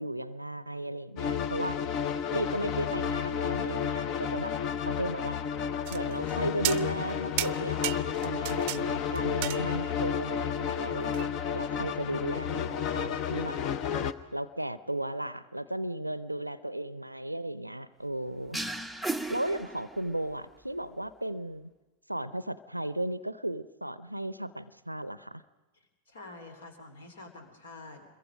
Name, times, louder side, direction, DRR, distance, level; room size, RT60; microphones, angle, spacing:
voice 1, 0.0-1.9 2.3-4.5 4.8-5.4 5.9-13.6 14.3-18.6 19.3-21.7 22.1-25.4, right 1 dB, 85° right, 17 dB, 0.6 m, -35 dB
sound 1, 1.2-14.1, left 8 dB, 40° left, 0.9 m, -31 dB
sound 2, 5.9-6.3 6.6-7.1 7.4-8.8 9.2-10.0 11.1-11.3, right 18 dB, 45° right, 0.6 m, -34 dB
sound 3, 18.5-20.3, right 2 dB, ahead, 0.7 m, -35 dB
voice 2, 26.1-28.1, left 2 dB, 65° left, 7 dB, 3.4 m, -47 dB
26.5 x 22.0 x 5.2 m, 1.2 s
figure-of-eight pair, 90°, 0 cm